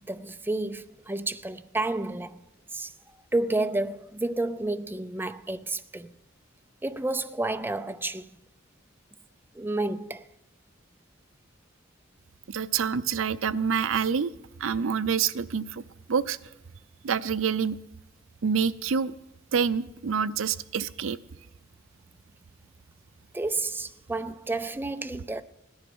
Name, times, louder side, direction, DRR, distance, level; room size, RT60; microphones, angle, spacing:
voice 1, 0.1-2.4 2.7-2.9 3.3-6.1 6.8-8.4 9.5-10.3 23.3-25.4, right 2 dB, 10° right, 0.5 m, -30 dB
voice 2, 12.5-14.3 14.6-15.8 16.1-16.4 17.0-17.8 18.4-19.1 19.5-21.2, right 6 dB, 80° right, 0.5 m, -27 dB
17.0 x 10.5 x 6.2 m
head